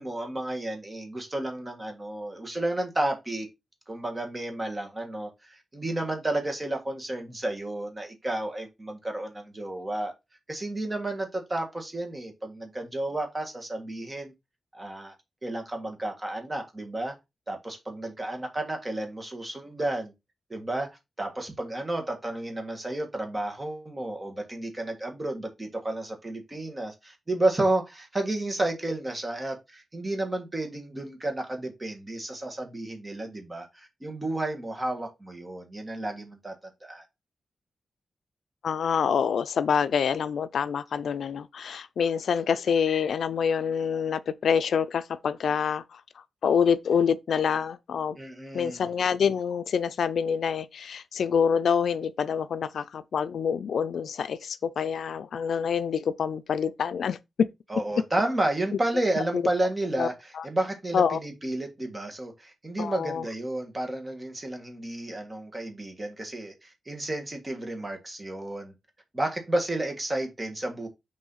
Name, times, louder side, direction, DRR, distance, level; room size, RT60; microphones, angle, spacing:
voice 1, 0.0-3.5 3.9-10.1 10.5-14.3 14.7-15.1 15.4-17.1 17.5-20.1 20.5-36.5 36.8-37.0 48.2-48.9 57.7-68.7 69.1-70.9, right 1 dB, 20° right, 1.6 m, -31 dB
voice 2, 38.6-46.0 46.4-48.2 48.5-57.5 59.3-59.4 60.0-60.1 60.4-60.5 60.9-61.2 62.8-63.2, left 7 dB, 80° left, 0.4 m, -26 dB
6.4 x 3.1 x 5.5 m
wide cardioid pair, 170°, 0 cm